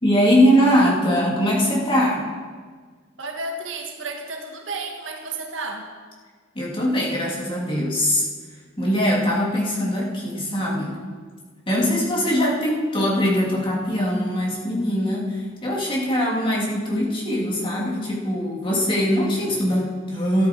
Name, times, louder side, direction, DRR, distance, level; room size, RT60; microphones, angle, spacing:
voice 1, 0.0-2.2 6.5-8.2 8.8-11.0 11.7-20.5, equal, 25° left, -4 dB, 2.8 m, -21 dB
voice 2, 3.2-5.9, right 3 dB, 85° right, 3 dB, 1.6 m, -32 dB
13.5 x 11.0 x 4.6 m, 1.5 s
head